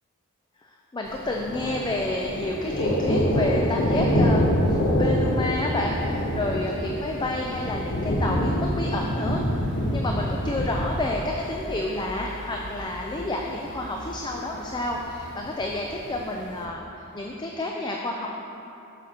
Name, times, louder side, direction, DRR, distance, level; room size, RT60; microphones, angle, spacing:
voice 1, 0.6-9.4 9.9-16.8 17.1-18.3, left 2 dB, 20° left, 0 dB, 0.5 m, -30 dB
Thunder, 1.1-16.6, equal, 60° left, 1.2 m, -27 dB
12.0 x 5.9 x 4.4 m, 2.9 s
head